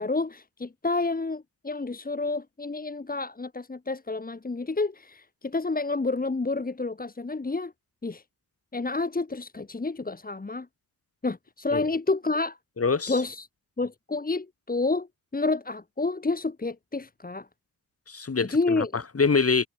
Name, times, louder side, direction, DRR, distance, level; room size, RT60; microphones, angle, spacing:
voice 1, 0.0-7.7 8.0-8.2 8.7-10.7 11.2-12.6 13.1-13.5 13.8-15.1 15.3-17.5 18.5-19.0, left 3 dB, 25° left, 1.8 m, -29 dB
voice 2, 12.8-13.2 18.1-19.7, left 4 dB, 40° left, 3.4 m, -25 dB
cardioid pair, 80°, 37 cm